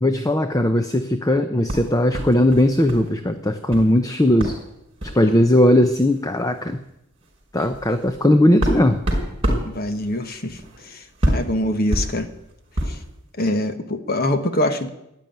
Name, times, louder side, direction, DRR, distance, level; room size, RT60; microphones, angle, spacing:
voice 1, 0.0-4.6 5.0-6.8 7.5-9.0 9.5-9.6, left 1 dB, 15° left, 8 dB, 0.6 m, -18 dB
sound 1, 1.7-3.1 3.3-3.9 4.4-4.6 5.0-5.2 6.1-6.2 6.5-6.7 7.2-13.1, equal, 25° right, 4.9 m, -27 dB
voice 2, 9.6-10.6 10.9-12.3 12.9-13.0 13.4-14.9, left 1 dB, 40° left, 9 dB, 1.2 m, -24 dB
14.0 x 10.5 x 9.3 m, 0.85 s
head